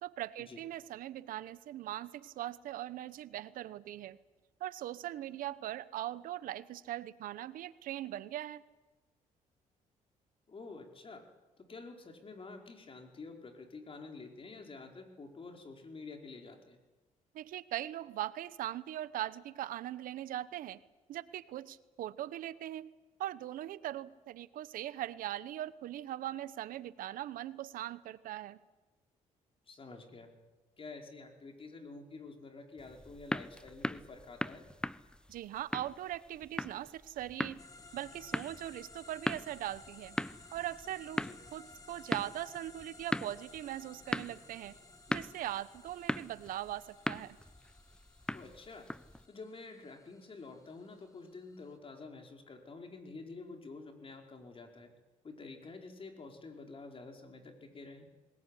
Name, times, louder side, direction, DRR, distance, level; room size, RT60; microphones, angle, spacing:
voice 1, 0.0-4.2 4.6-8.6 17.3-20.8 21.1-22.9 23.2-28.6 35.3-37.6 37.9-40.2 40.5-41.2 41.5-44.8 45.1-47.4, right 13 dB, 80° right, 16 dB, 1.0 m, -40 dB
voice 2, 10.5-11.3 11.6-16.8 29.7-30.3 30.8-34.7 41.1-41.4 48.3-48.9 49.3-54.9 55.2-58.1, left 3 dB, 40° left, 4 dB, 4.9 m, -49 dB
sound 1, 32.8-49.3, left 1 dB, 5° left, 0.9 m, -40 dB
sound 2, 37.6-51.8, left 3 dB, 25° left, 2.8 m, -57 dB
21.0 x 20.0 x 10.0 m, 1.1 s
supercardioid pair, 75°, 14 cm